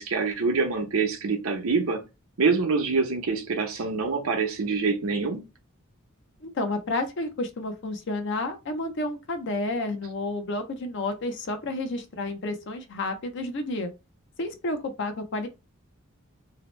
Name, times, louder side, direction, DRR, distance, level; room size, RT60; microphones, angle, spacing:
voice 1, 0.0-2.0 2.4-5.5, right 4 dB, 85° right, 0.8 m, -25 dB
voice 2, 6.4-13.9 14.4-15.5, left 2 dB, 55° left, 0.5 m, -30 dB
2.8 x 2.1 x 3.1 m
head